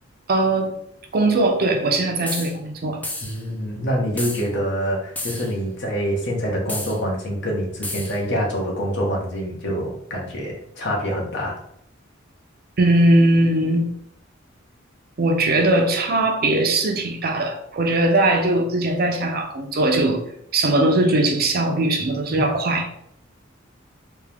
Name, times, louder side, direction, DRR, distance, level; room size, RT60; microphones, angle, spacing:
voice 1, 0.3-0.8 1.1-3.0 12.8-13.9 15.2-20.2 20.5-22.9, right 2 dB, 50° right, 3 dB, 0.6 m, -20 dB
sound 1, 2.3-2.5 3.0-3.4 4.2-4.5 5.2-5.5 6.7-7.0 7.8-8.2, left 2 dB, 10° left, 0.5 m, -31 dB
voice 2, 3.2-11.6 22.3-22.4, equal, 65° left, -1 dB, 1.2 m, -26 dB
3.4 x 2.9 x 3.5 m, 0.73 s
head